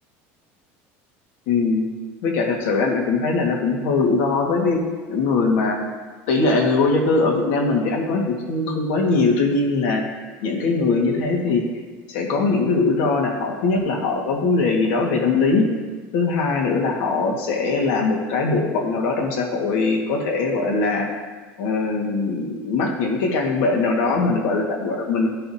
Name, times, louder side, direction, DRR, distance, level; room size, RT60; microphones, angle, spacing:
voice 1, 1.5-1.8 2.2-4.8 5.1-5.8 6.3-10.0 10.4-11.6 12.1-15.7 16.1-21.2 21.6-25.3, left 3 dB, 80° left, 0 dB, 1.7 m, -21 dB
13.5 x 5.8 x 2.8 m, 1.4 s
cardioid pair, 160°, 6 cm